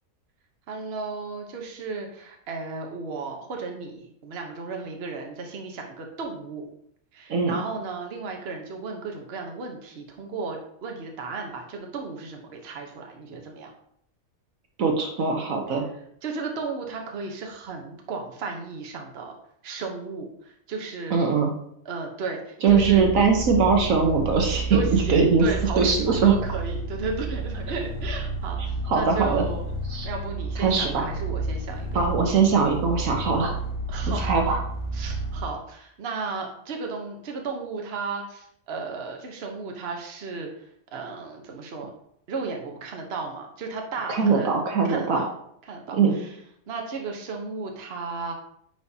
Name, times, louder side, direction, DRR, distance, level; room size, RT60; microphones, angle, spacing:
voice 1, 0.7-6.7 7.1-13.7 16.2-19.3 19.6-21.2 21.8-23.2 24.7-29.7 30.0-32.1 33.9-34.4 34.9-41.9 42.3-45.3 45.7-46.4 46.7-48.3, right 4 dB, 50° right, 2 dB, 1.2 m, -34 dB
voice 2, 14.8-15.8 21.1-21.5 22.6-24.8 25.1-25.4 25.8-26.4 28.9-29.4 29.9-30.1 30.6-31.1 31.9-33.6 34.1-34.6 44.1-45.2 45.9-46.1, right 5 dB, 70° right, 2 dB, 1.4 m, -21 dB
sound 1, 22.7-35.4, right 2 dB, 20° left, 1.5 m, -31 dB
9.4 x 5.0 x 2.8 m, 0.70 s
omnidirectional pair, 1.5 m